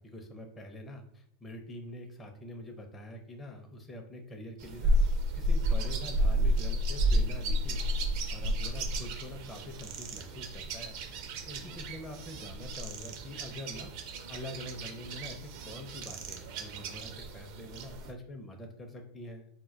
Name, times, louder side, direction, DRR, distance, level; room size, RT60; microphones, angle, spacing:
voice 1, 0.0-5.0 5.4-7.8 8.3-11.0 11.5-13.9 14.3-19.5, left 1 dB, 20° left, 3 dB, 0.5 m, -45 dB
sound 1, 4.6-18.1, equal, 55° right, 0.5 m, -32 dB
2.1 x 2.1 x 3.8 m, 0.69 s
hypercardioid pair, 95°, 0 cm